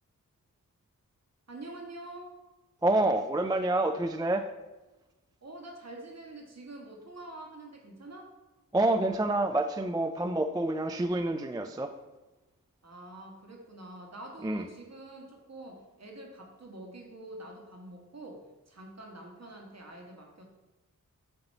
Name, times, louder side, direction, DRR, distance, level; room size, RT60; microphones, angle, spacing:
voice 1, 1.5-2.4 5.4-8.3 12.8-20.4, right 2 dB, 50° right, 1 dB, 1.5 m, -46 dB
voice 2, 2.8-4.5 8.7-11.9 14.4-14.6, right 2 dB, 15° right, 7 dB, 0.3 m, -27 dB
7.7 x 2.9 x 5.4 m, 1.1 s
wide cardioid pair, 70°, 33 cm